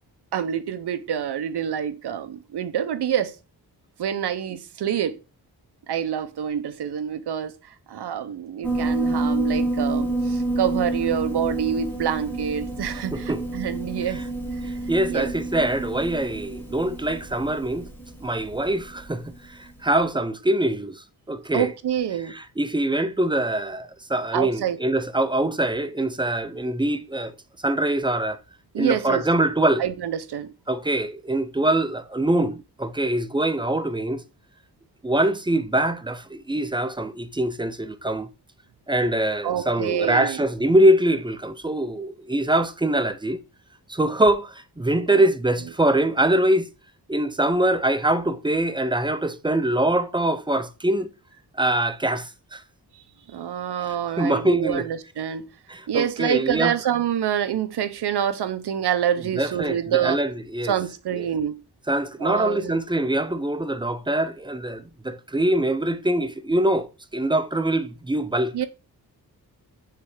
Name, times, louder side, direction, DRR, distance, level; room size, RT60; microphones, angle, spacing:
voice 1, 0.3-3.3 4.0-5.2 5.9-14.2 15.1-15.3 21.5-22.3 24.3-24.8 28.7-29.2 29.8-30.5 39.4-40.4 45.1-45.2 52.9-53.0 53.3-55.5 55.9-60.2 60.7-61.6 62.2-62.8 68.5-68.7, right 9 dB, 80° right, 0.8 m, -26 dB
Piano, 8.6-19.4, right 2 dB, 5° left, 1.2 m, -28 dB
voice 2, 13.1-13.4 14.1-14.2 14.6-17.9 18.2-21.7 22.3-27.3 27.6-28.4 28.8-29.8 30.7-34.2 35.0-38.3 38.9-43.4 43.9-46.7 47.1-51.1 51.6-52.6 53.9-54.9 55.7-56.7 59.4-60.7 61.1-61.3 61.9-68.5, right 1 dB, 10° right, 0.5 m, -23 dB
6.9 x 3.3 x 4.8 m
wide cardioid pair, 130°, 39 cm